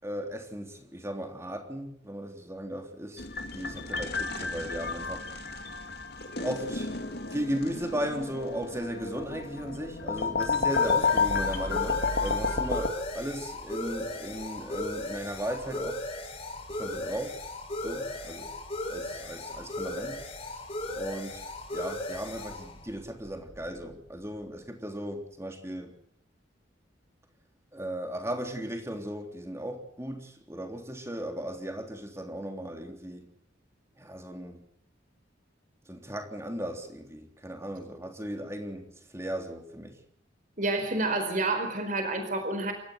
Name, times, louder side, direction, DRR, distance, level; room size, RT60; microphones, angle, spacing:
voice 1, 0.0-3.3 3.5-5.2 6.4-7.0 7.3-16.0 16.7-17.5 17.8-18.5 18.9-20.2 20.5-20.6 20.9-21.5 21.7-26.0 27.7-33.3 34.0-34.6 35.9-40.0, equal, 15° right, 4 dB, 3.5 m, -36 dB
sound 1, 3.2-12.9, left 4 dB, 55° left, 2.3 m, -31 dB
sound 2, 9.0-24.2, left 1 dB, 30° left, 4.9 m, -37 dB
voice 2, 40.6-42.7, right 2 dB, 45° right, 6 dB, 4.5 m, -29 dB
28.5 x 14.5 x 8.2 m, 0.65 s
head